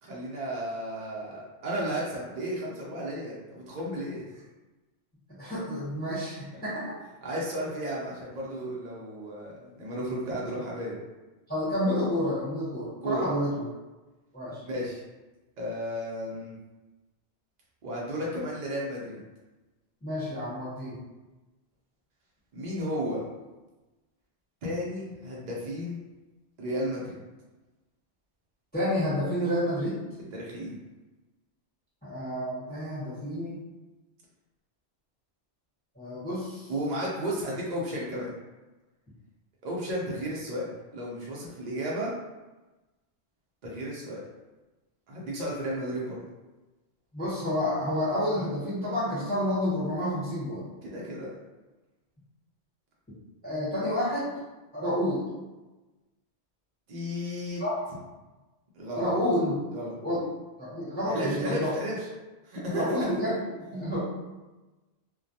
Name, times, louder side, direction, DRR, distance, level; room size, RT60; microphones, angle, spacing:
voice 1, 0.0-4.4 7.2-10.9 13.0-13.3 14.6-15.0 15.6-16.6 17.8-19.2 22.5-23.2 24.6-26.0 26.6-27.2 30.3-30.8 36.7-38.3 39.6-40.7 40.9-42.1 43.6-44.2 45.1-46.2 50.8-51.3 56.9-57.6 58.8-59.1 59.7-60.2 61.1-62.1 62.4-63.1, equal, 55° right, -4 dB, 0.5 m, -33 dB
voice 2, 5.4-6.9 11.5-13.6 14.3-14.6 20.0-21.0 28.7-30.0 32.0-33.6 35.9-36.7 47.1-50.6 53.4-54.3 54.7-55.2 57.6-57.7 58.9-59.5 60.0-60.2 60.6-61.7 62.7-63.4 63.7-64.0, equal, 10° left, -12 dB, 1.0 m, -29 dB
2.2 x 2.1 x 2.7 m, 1.1 s
omnidirectional pair, 1.2 m